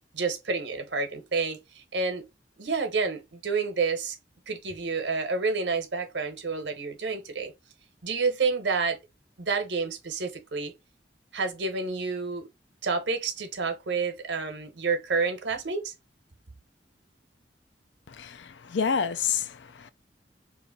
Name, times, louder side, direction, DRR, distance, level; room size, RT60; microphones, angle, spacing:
voice 1, 0.1-2.2 2.6-4.2 4.5-7.5 8.0-9.0 9.4-10.7 11.3-12.5 12.8-15.9, right 4 dB, 90° right, 1.0 m, -29 dB
voice 2, 18.2-19.9, left 6 dB, 80° left, 0.5 m, -29 dB
3.1 x 2.6 x 4.0 m
head